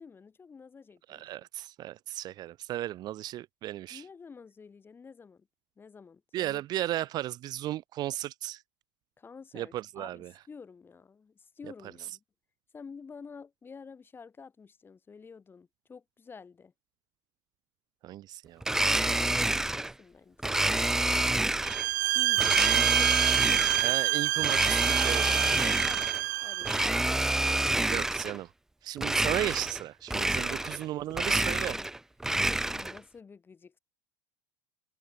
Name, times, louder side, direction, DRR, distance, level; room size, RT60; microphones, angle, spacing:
voice 1, 0.0-1.3 3.9-5.5 5.8-6.6 9.2-12.2 12.7-16.7 18.8-20.6 22.1-23.2 23.4-23.6 25.8-26.1 26.4-27.9 30.5-30.6 31.2-31.9 32.5-33.8, left 5 dB, 20° left, 3.0 m, -49 dB
voice 2, 1.1-4.0 6.3-8.6 9.5-10.3 18.0-18.6 23.8-25.9 27.9-28.5 28.8-31.8, right 14 dB, 45° right, 1.1 m, -35 dB
Domestic sounds home sounds, 18.6-19.9 20.4-21.9 22.4-23.9 24.4-26.2 26.6-28.4 29.0-29.8 30.1-30.8 31.1-33.0, right 2 dB, 5° right, 0.3 m, -28 dB
sound 1, 21.6-26.9, right 17 dB, 70° right, 0.5 m, -27 dB
hypercardioid pair, 80°, 10 cm